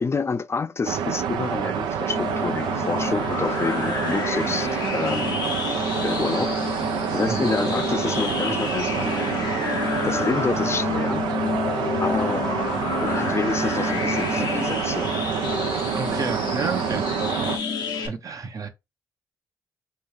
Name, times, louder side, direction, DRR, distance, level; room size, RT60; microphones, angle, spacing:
voice 1, 0.0-5.4 6.0-9.4 9.8-11.3 12.0-12.5 13.0-15.2, left 4 dB, 35° left, 0.4 m, -28 dB
sound 1, 0.8-17.6, right 8 dB, 80° right, 0.4 m, -27 dB
sound 2, 2.1-18.1, left 5 dB, 70° left, 0.7 m, -29 dB
voice 2, 15.9-17.0 18.0-18.7, right 4 dB, 50° right, 0.7 m, -30 dB
4.3 x 2.3 x 3.2 m
hypercardioid pair, 40°, 8 cm